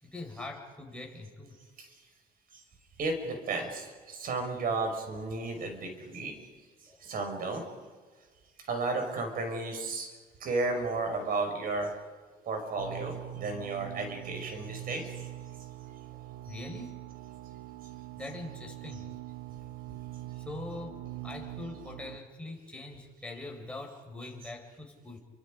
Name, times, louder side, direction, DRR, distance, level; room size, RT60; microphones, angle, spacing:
voice 1, 0.0-1.6 6.9-7.1 16.5-16.9 18.1-19.1 20.4-25.2, left 2 dB, 5° left, 0 dB, 5.0 m, -43 dB
voice 2, 3.0-6.4 7.0-7.6 8.6-10.1 10.4-11.9 12.5-15.3 16.5-16.6, right 3 dB, 60° right, 4 dB, 5.8 m, -33 dB
sound 1, 12.8-22.2, right 15 dB, 85° right, 0.9 m, -43 dB
30.0 x 25.0 x 5.2 m, 1.5 s
cardioid pair, 110°, 17 cm